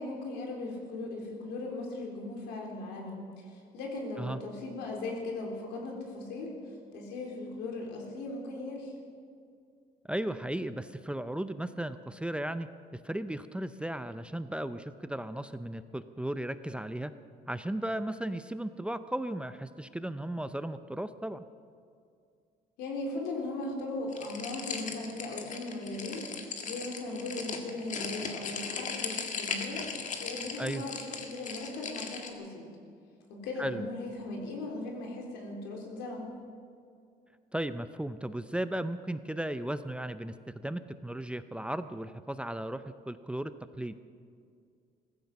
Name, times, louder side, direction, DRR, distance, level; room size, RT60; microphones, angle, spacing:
voice 1, 0.0-6.6 6.9-8.9 22.8-26.3 26.6-29.8 30.2-32.6 33.3-36.3, left 2 dB, 90° left, 0 dB, 3.8 m, -38 dB
voice 2, 10.1-17.1 17.5-21.4 30.6-30.8 33.6-33.8 37.5-43.5 43.8-44.0, right 1 dB, 5° right, 11 dB, 0.5 m, -35 dB
sound 1, 24.1-32.3, left 5 dB, 45° left, 1.9 m, -38 dB
16.5 x 15.0 x 6.0 m, 2.3 s
cardioid pair, 110°, 17 cm